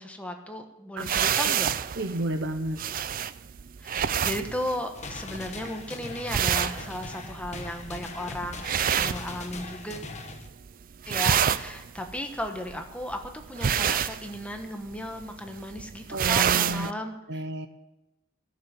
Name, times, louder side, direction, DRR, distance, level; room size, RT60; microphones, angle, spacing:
voice 1, 0.0-1.7 3.8-8.7 8.9-10.1 11.0-17.4, left 1 dB, 5° left, 4 dB, 1.2 m, -35 dB
sound 1, 1.0-10.0 10.2-10.7 10.9-16.9, right 8 dB, 45° right, 0.4 m, -28 dB
voice 2, 1.0-1.5 2.0-2.8 16.1-16.9 17.3-17.7, right 2 dB, 60° right, 7 dB, 0.9 m, -31 dB
sound 2, 4.9-10.5, left 3 dB, 35° left, 1.2 m, -41 dB
13.5 x 7.4 x 9.5 m, 0.95 s
head